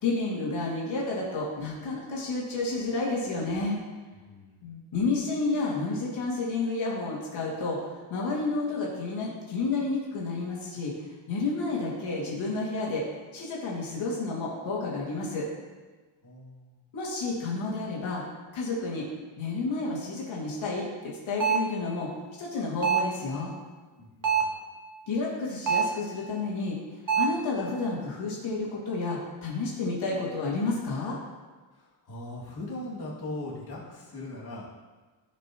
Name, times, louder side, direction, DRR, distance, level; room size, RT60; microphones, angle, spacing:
voice 1, 0.0-3.8 4.6-10.9 11.3-13.0 13.3-15.5 16.9-18.2 18.5-19.0 19.4-22.1 22.4-23.5 25.1-26.8 27.2-31.2, left 3 dB, 85° left, -5 dB, 2.5 m, -30 dB
voice 2, 4.1-4.7 16.2-16.8 24.0-24.6 31.7-34.6, left 2 dB, 55° left, -6 dB, 2.5 m, -40 dB
sound 1, 21.4-21.8 22.8-23.2 24.2-24.6 25.7-26.0 27.1-27.5, right 6 dB, 45° right, 1.1 m, -25 dB
14.5 x 5.4 x 3.0 m, 1.3 s
wide cardioid pair, 160°, 45 cm